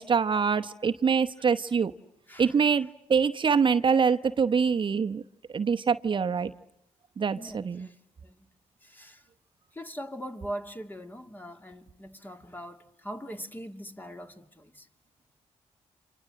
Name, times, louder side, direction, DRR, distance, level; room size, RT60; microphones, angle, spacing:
voice 1, 0.0-1.9 2.4-5.2 5.5-6.5 7.2-7.9, right 6 dB, 45° right, 1.0 m, -25 dB
voice 2, 2.3-2.6 7.3-8.0 8.2-8.5 8.8-9.2 9.7-14.9, equal, 15° left, 2.5 m, -41 dB
29.5 x 26.0 x 7.7 m
cardioid pair, 70°, 12 cm